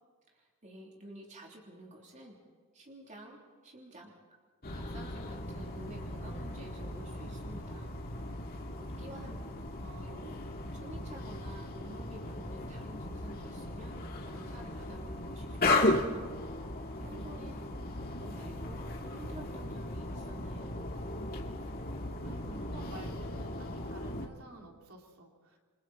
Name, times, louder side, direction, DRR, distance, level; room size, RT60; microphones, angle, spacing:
voice 1, 0.3-2.4 2.7-4.2 4.7-7.9 8.8-9.4 10.0-10.3 10.7-16.0 17.0-20.8, right 1 dB, 35° right, -1 dB, 3.3 m, -50 dB
sound 1, 4.6-24.3, left 2 dB, 45° left, 2.2 m, -36 dB
voice 2, 9.1-9.4 9.8-10.3 17.0-17.7 22.2-25.6, right 1 dB, 70° right, 0 dB, 3.6 m, -51 dB
28.5 x 24.5 x 4.3 m, 1.5 s
head